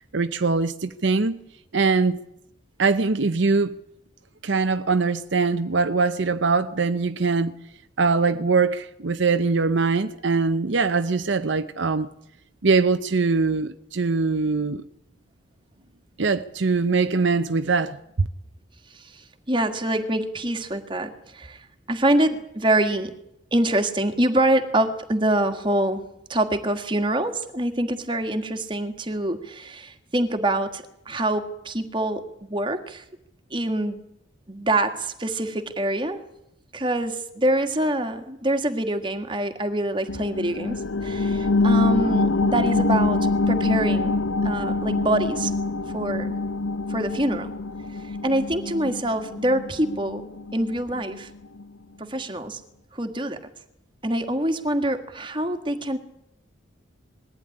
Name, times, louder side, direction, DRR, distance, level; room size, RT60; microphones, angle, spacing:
voice 1, 0.1-1.4 1.7-2.2 2.8-3.7 4.4-7.5 8.0-12.1 12.6-14.8 16.2-18.3, right 4 dB, 65° right, 0.8 m, -22 dB
voice 2, 18.9-23.1 23.5-33.0 33.5-34.0 34.5-36.2 36.7-45.5 45.9-46.4 46.9-47.5 48.0-50.2 50.5-51.3 52.0-52.6 52.9-53.4 54.0-56.0, right 1 dB, 25° right, 1.8 m, -25 dB
sound 1, 40.1-51.2 51.6-51.7, left 3 dB, 80° left, 0.8 m, -25 dB
21.0 x 15.0 x 9.9 m
head